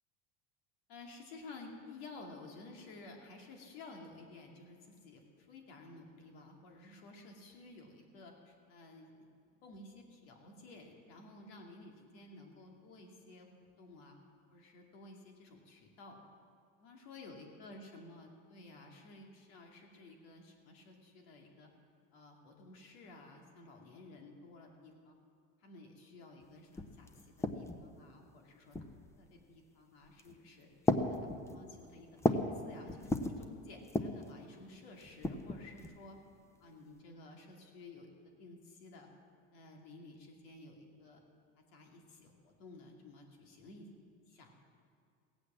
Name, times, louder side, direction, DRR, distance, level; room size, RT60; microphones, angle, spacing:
voice 1, 0.9-9.1 9.6-14.2 14.5-16.2 16.8-21.7 22.1-25.2 25.6-28.8 29.2-30.7 31.0-31.2 31.4-36.2 36.6-39.1 39.5-41.2 41.7-43.9 44.2-44.5, left 2 dB, 85° left, 2 dB, 2.5 m, -54 dB
sound 1, 26.4-26.5 26.7-27.9 28.7-29.2 30.0-30.4 30.8-32.6 32.9-33.4 33.8-34.3 35.0-36.0, left 2 dB, 10° left, 0.7 m, -35 dB
17.0 x 8.3 x 7.5 m, 2.3 s
cardioid pair, 135°, 29 cm